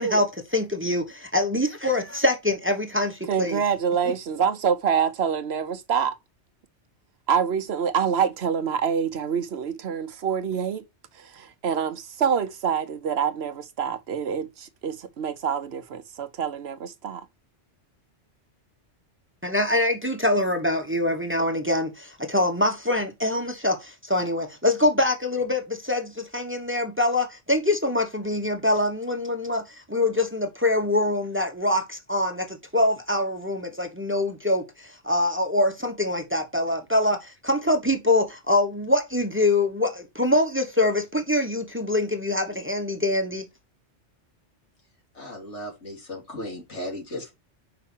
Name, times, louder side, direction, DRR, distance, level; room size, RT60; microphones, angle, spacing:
voice 1, 0.0-3.6 4.0-4.1 19.4-43.5, left 1 dB, 10° right, 1.1 m, -24 dB
voice 2, 3.3-6.2 7.3-10.8 11.1-17.3, right 7 dB, 65° right, 1.0 m, -26 dB
voice 3, 45.1-47.3, left 1 dB, 80° left, 3.2 m, -36 dB
5.7 x 5.1 x 4.4 m
omnidirectional pair, 1.2 m